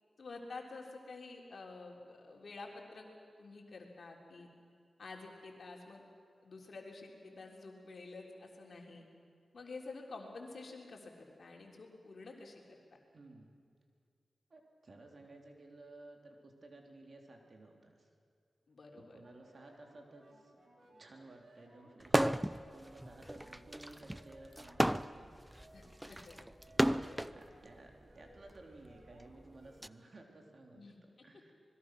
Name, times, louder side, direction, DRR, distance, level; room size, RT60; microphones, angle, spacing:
voice 1, 0.2-3.1 3.4-4.5 5.0-6.0 6.4-9.0 9.5-12.8 18.7-19.2 22.3-22.5 25.7-26.4 26.8-27.2 30.7-31.3, left 3 dB, 70° left, 1 dB, 3.6 m, -50 dB
voice 2, 13.1-13.5 14.5-18.1 19.0-20.5 21.0-22.3 22.6-25.3 27.3-30.8 31.2-31.5, right 2 dB, 60° right, 2 dB, 3.5 m, -56 dB
sound 1, 19.2-29.8, right 1 dB, 80° right, 4.0 m, -63 dB
sound 2, 22.0-22.6 23.0-27.4 28.2-29.9, equal, 10° right, 0.6 m, -33 dB
26.0 x 21.0 x 6.2 m, 2.2 s
cardioid pair, 45°, 0 cm